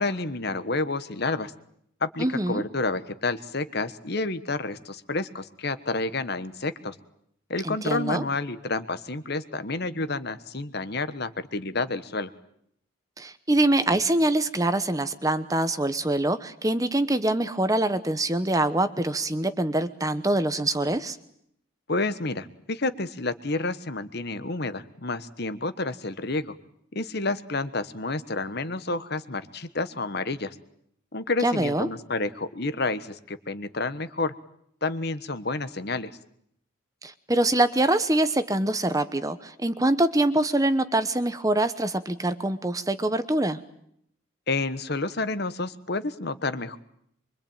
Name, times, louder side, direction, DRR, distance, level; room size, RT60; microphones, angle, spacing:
voice 1, 0.0-1.5 2.0-6.9 7.5-12.3 21.9-26.5 26.9-30.5 31.1-34.3 34.8-36.1 44.5-46.8, left 3 dB, 50° left, 12 dB, 1.3 m, -29 dB
voice 2, 2.2-2.6 7.6-8.2 13.2-21.2 31.4-31.9 37.0-43.6, right 1 dB, 15° right, 12 dB, 1.0 m, -24 dB
24.5 x 24.5 x 9.0 m, 0.71 s
head